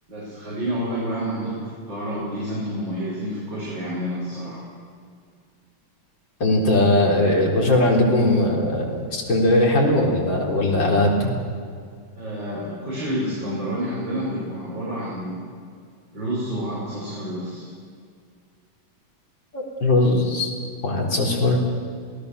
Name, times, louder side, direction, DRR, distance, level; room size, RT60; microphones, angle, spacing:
voice 1, 0.1-4.6 12.2-15.5 16.1-17.7, equal, 65° right, -7 dB, 6.7 m, -29 dB
voice 2, 6.4-11.3 19.5-20.5 20.8-21.6, left 1 dB, 65° left, -1 dB, 4.6 m, -19 dB
26.5 x 18.5 x 6.9 m, 2.2 s
omnidirectional pair, 2.2 m